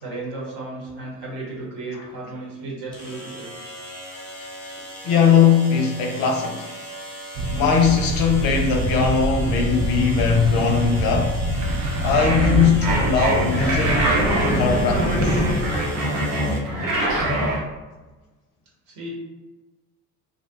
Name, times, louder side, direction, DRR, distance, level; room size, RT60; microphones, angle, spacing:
voice 1, 0.0-3.5 18.9-19.1, right 2 dB, 60° right, 1.1 m, -34 dB
sound 1, 0.9-1.0 2.9-16.6, equal, 5° left, 1.1 m, -38 dB
voice 2, 5.0-6.7 7.5-11.4 12.0-15.4, left 6 dB, 50° left, 0.5 m, -20 dB
sound 2, 7.4-15.7, right 1 dB, 40° right, 0.5 m, -25 dB
sound 3, 12.1-17.6, right 1 dB, 80° right, 0.8 m, -23 dB
2.4 x 2.1 x 2.7 m
hypercardioid pair, 55°, 47 cm